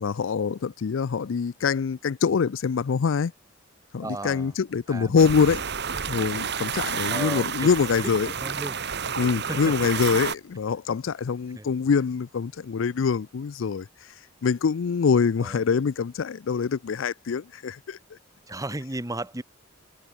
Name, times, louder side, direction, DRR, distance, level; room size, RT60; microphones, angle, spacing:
voice 1, 0.0-3.3 3.9-5.6 6.1-8.3 9.2-13.9 14.4-18.0, left 6 dB, 75° left, 0.4 m, -24 dB
voice 2, 4.0-4.5 4.9-5.6 7.1-7.7 8.0-8.1 8.4-8.8 9.4-9.7 11.5-11.7 15.4-15.7 18.5-19.4, right 2 dB, 15° right, 1.4 m, -35 dB
sound 1, 5.2-10.4, right 6 dB, 60° right, 2.3 m, -30 dB
head